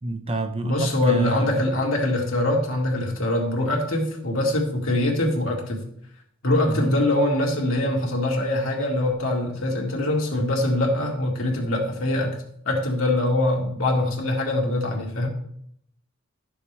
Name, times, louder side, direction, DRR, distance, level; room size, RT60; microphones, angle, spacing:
voice 1, 0.0-1.6 6.7-6.9, right 2 dB, 25° right, 8 dB, 0.6 m, -28 dB
voice 2, 0.6-5.8 6.4-12.4 12.7-15.3, left 1 dB, 70° left, -1 dB, 2.2 m, -23 dB
11.0 x 7.0 x 3.4 m, 0.69 s
head